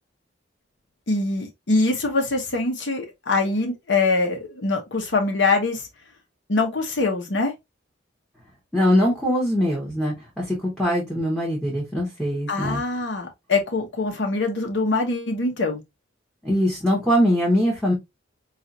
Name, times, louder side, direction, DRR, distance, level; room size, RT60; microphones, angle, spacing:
voice 1, 1.1-5.9 6.5-7.5 12.5-15.8, left 3 dB, 65° left, 0.9 m, -23 dB
voice 2, 8.7-12.8 16.4-17.9, equal, ahead, 1.2 m, -22 dB
5.5 x 2.5 x 2.7 m
head